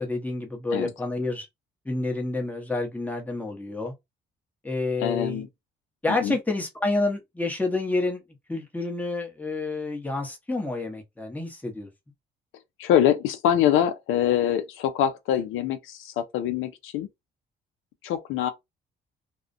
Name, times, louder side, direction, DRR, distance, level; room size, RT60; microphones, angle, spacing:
voice 1, 0.0-1.5 1.8-3.9 4.6-5.5 6.0-8.2 8.5-11.9, left 2 dB, 10° left, 0.9 m, -29 dB
voice 2, 5.0-5.5 6.2-6.4 12.8-17.1 18.0-18.5, left 10 dB, 90° left, 0.4 m, -24 dB
2.3 x 2.1 x 2.5 m
cardioid pair, 90°, 20 cm